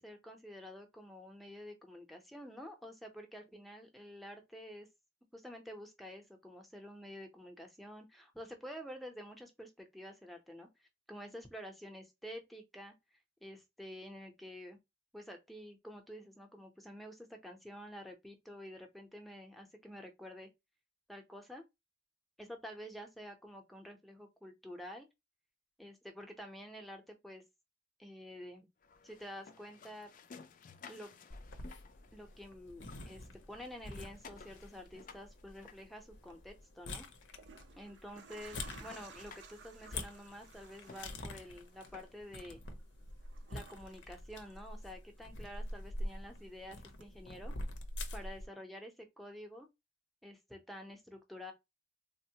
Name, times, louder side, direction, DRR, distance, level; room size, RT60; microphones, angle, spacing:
voice 1, 0.0-4.9 5.3-12.9 13.4-14.8 15.1-20.5 21.1-21.6 22.4-25.1 25.8-27.4 28.0-28.7 29.0-30.1 30.9-31.1 32.1-37.1 37.8-42.6 43.5-47.5 48.1-49.7 50.2-51.5, equal, ahead, 0.6 m, -49 dB
sound 1, 28.8-32.5 32.8-36.5 37.2-37.3 37.7-37.8 38.1-42.4, left 5 dB, 45° left, 0.4 m, -57 dB
sound 2, 31.3-48.5, left 1 dB, 90° left, 0.6 m, -46 dB
sound 3, 36.1-36.3 37.2-45.2 45.5-46.6 47.0-47.1, right 6 dB, 70° right, 0.5 m, -58 dB
3.4 x 2.0 x 2.8 m
head